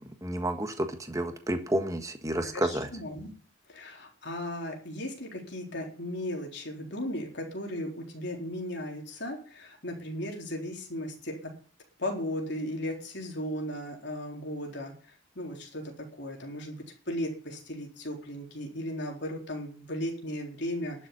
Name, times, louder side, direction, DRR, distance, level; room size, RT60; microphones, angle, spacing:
voice 1, 0.2-2.9, right 1 dB, 15° right, 7 dB, 1.5 m, -30 dB
voice 2, 2.4-3.3 3.7-11.5 12.0-21.1, left 1 dB, 55° left, 1 dB, 4.1 m, -36 dB
12.0 x 7.4 x 9.8 m, 0.43 s
head